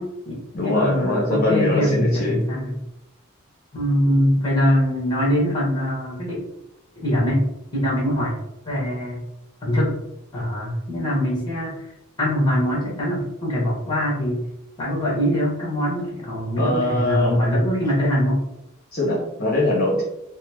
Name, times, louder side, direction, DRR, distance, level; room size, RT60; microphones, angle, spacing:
voice 1, 0.0-2.7 3.7-6.4 6.9-7.4 7.7-8.3 8.6-9.2 9.6-9.9 10.3-11.8 12.2-14.4 14.8-18.4, equal, 20° left, -4 dB, 1.4 m, -22 dB
voice 2, 0.5-2.4 16.6-17.4 18.9-20.0, left 2 dB, 40° left, -6 dB, 0.9 m, -22 dB
4.1 x 2.1 x 2.9 m, 0.87 s
head